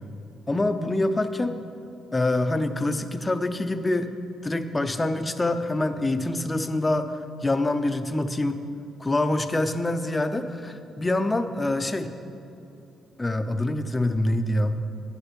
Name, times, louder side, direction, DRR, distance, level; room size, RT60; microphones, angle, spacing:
voice 1, 0.5-1.5 2.1-4.1 4.4-8.6 9.0-12.1 13.2-14.8, left 2 dB, 20° left, 9 dB, 0.5 m, -25 dB
8.8 x 7.2 x 5.2 m, 2.7 s
cardioid pair, 90°, 0 cm